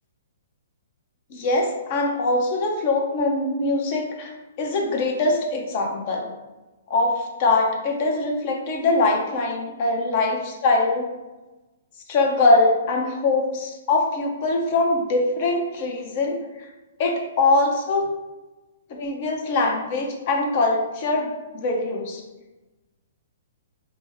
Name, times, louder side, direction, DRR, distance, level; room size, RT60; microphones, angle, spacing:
voice 1, 1.3-4.3 4.6-6.3 6.9-11.1 12.1-16.7 17.0-18.1 19.0-22.2, left 2 dB, 45° left, 2 dB, 0.8 m, -22 dB
5.0 x 2.2 x 3.5 m, 1.1 s
figure-of-eight pair, 120°, 0 cm